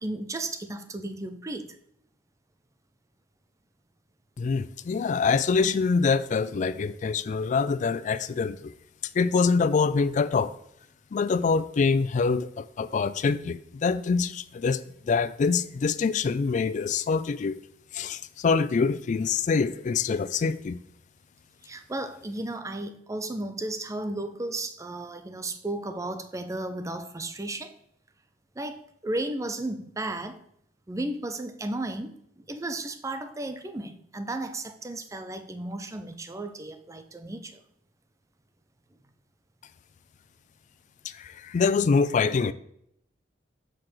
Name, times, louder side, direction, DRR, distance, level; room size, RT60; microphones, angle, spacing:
voice 1, 0.0-1.8 21.6-27.7 28.6-30.4 30.9-37.6, right 2 dB, 15° right, 0.5 m, -34 dB
voice 2, 4.4-8.7 9.1-10.5 11.1-17.6 17.9-20.8 41.0-42.5, left 5 dB, 40° left, 0.3 m, -25 dB
6.8 x 5.8 x 3.2 m
head